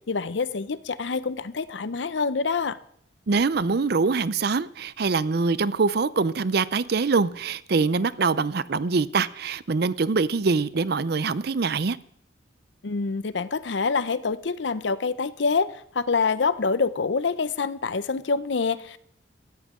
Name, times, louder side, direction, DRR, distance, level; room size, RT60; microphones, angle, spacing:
voice 1, 0.1-2.8 12.8-19.0, left 4 dB, 75° left, 0.6 m, -26 dB
voice 2, 3.3-12.0, right 4 dB, 60° right, 0.6 m, -24 dB
17.0 x 14.0 x 3.7 m
head